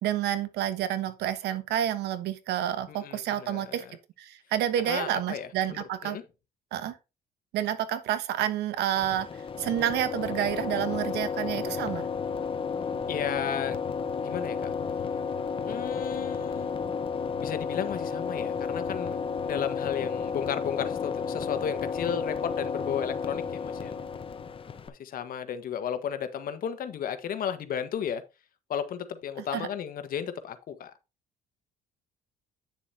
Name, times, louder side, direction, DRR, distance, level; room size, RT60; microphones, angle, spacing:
voice 1, 0.0-3.8 4.2-6.2 6.7-6.9 7.5-9.3 9.6-12.1 29.5-29.7, right 11 dB, 80° right, 1.2 m, -29 dB
voice 2, 2.9-4.0 4.9-6.2 13.1-13.8 14.2-14.7 15.6-16.8 17.4-24.0 24.9-28.2 28.7-30.9, left 8 dB, 60° left, 1.4 m, -34 dB
sound 1, 8.9-24.9, left 6 dB, 30° left, 0.9 m, -32 dB
9.7 x 6.9 x 2.8 m
cardioid pair, 110°, 17 cm